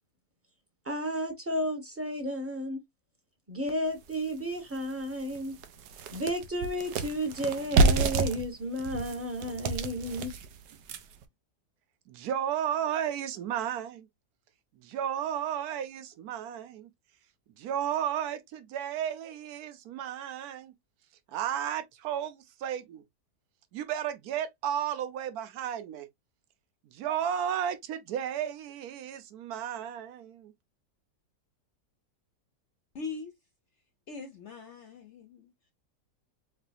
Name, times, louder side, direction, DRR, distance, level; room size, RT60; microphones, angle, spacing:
voice 1, 0.8-2.8 3.5-5.5 6.1-10.3, equal, 10° right, 0.9 m, -32 dB
sound 1, 4.1-4.2 4.7-4.8 5.2-11.2, right 3 dB, 90° right, 1.3 m, -29 dB
voice 2, 12.1-14.1 14.8-16.9 17.6-20.7 21.3-23.0 23.7-26.1 26.8-30.5, right 9 dB, 70° right, 1.2 m, -33 dB
voice 3, 32.9-33.3 34.1-35.5, left 4 dB, 60° left, 0.7 m, -41 dB
4.3 x 3.2 x 2.5 m
omnidirectional pair, 1.8 m